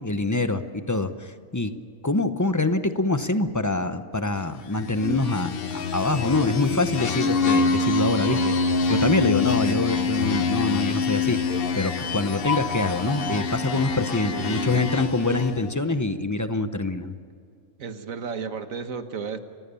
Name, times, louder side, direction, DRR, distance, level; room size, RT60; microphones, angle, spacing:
voice 1, 0.0-1.7 2.0-11.4 11.7-17.1, left 2 dB, 15° left, 10 dB, 0.8 m, -25 dB
sound 1, 4.8-15.7, left 4 dB, 50° left, 1.0 m, -25 dB
voice 2, 9.5-9.9 14.3-14.9 17.8-19.4, right 5 dB, 85° right, 9 dB, 1.7 m, -33 dB
30.0 x 15.0 x 7.0 m, 2.3 s
omnidirectional pair, 1.4 m